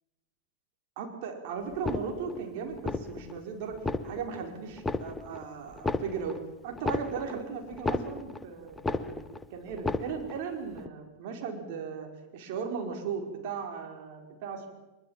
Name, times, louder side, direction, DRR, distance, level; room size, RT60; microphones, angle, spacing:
voice 1, 1.0-3.8 4.0-9.1 9.5-14.7, right 6 dB, 50° right, 4 dB, 4.7 m, -37 dB
sound 1, 1.7-2.4 2.8-3.4 3.7-4.4 4.8-5.4 5.7-8.5 8.8-9.4 9.7-10.4 10.8-10.9, left 3 dB, 10° left, 1.1 m, -33 dB
23.5 x 21.5 x 7.4 m, 1.1 s
figure-of-eight pair, 90°, 0 cm